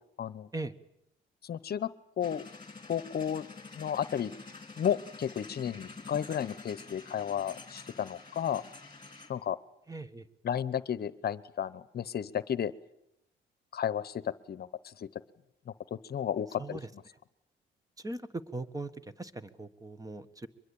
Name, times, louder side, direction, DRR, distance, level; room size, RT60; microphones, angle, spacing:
voice 1, 0.2-0.5 1.4-1.9 2.2-2.4 2.9-3.4 3.8-4.3 4.8-8.6 9.3-9.6 10.4-12.7 13.7-15.1 15.7-17.0, left 9 dB, 50° left, 17 dB, 0.9 m, -33 dB
sound 1, 2.2-9.4, left 4 dB, 25° left, 3.5 m, -48 dB
voice 2, 9.9-10.3 16.6-16.9 18.0-18.9 19.2-20.5, right 2 dB, 15° right, 14 dB, 1.4 m, -39 dB
23.5 x 21.5 x 8.7 m, 0.85 s
cardioid pair, 90°, 20 cm